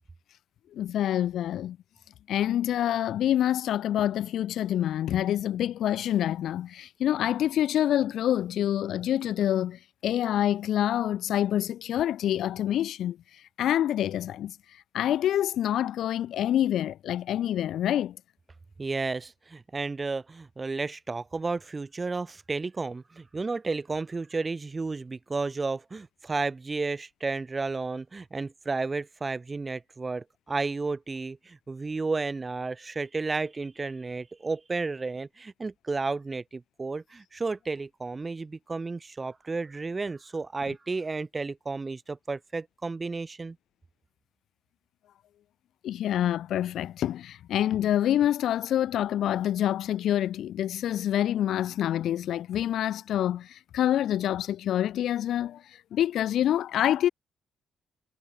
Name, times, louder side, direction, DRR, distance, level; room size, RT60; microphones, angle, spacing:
voice 1, 0.7-1.8 2.3-13.2 13.6-14.5 14.9-18.2 45.8-55.6 55.9-57.1, left 11 dB, 75° left, 1.1 m, -26 dB
voice 2, 18.8-43.6, right 3 dB, 30° right, 2.2 m, -32 dB
supercardioid pair, 60°, 0 cm